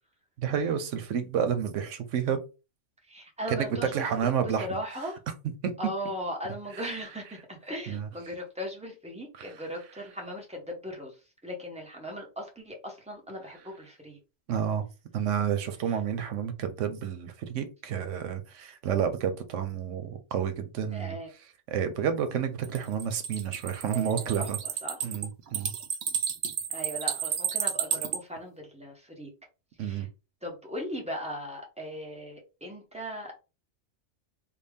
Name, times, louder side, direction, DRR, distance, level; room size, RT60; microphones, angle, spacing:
voice 1, 0.4-2.4 3.5-4.8 5.6-5.7 6.7-6.9 7.9-8.1 9.3-9.6 14.5-14.8 15.1-21.2 21.7-24.6 25.0-25.7 29.8-30.1, right 8 dB, 85° right, 1.0 m, -30 dB
voice 2, 3.1-5.2 5.8-11.1 11.4-14.2 20.9-21.3 23.9-24.5 24.8-25.1 26.7-29.3 29.8-30.1 30.4-33.3, equal, 5° right, 0.8 m, -38 dB
sound 1, 22.6-28.2, right 8 dB, 65° right, 0.8 m, -31 dB
3.4 x 2.3 x 3.5 m
omnidirectional pair, 1.2 m